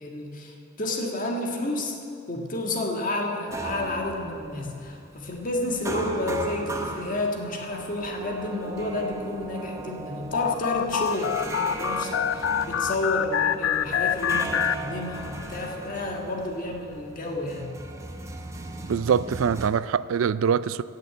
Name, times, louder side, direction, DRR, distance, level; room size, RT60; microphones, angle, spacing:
voice 1, 0.0-2.0 2.3-17.8, left 1 dB, 40° left, 1 dB, 1.7 m, -30 dB
sound 1, 3.5-19.7, right 2 dB, 15° right, 0.7 m, -37 dB
sound 2, 10.3-15.4, left 9 dB, 75° left, 0.3 m, -27 dB
voice 2, 18.8-20.8, right 7 dB, 85° right, 17 dB, 0.4 m, -24 dB
17.0 x 6.7 x 7.6 m, 2.6 s
head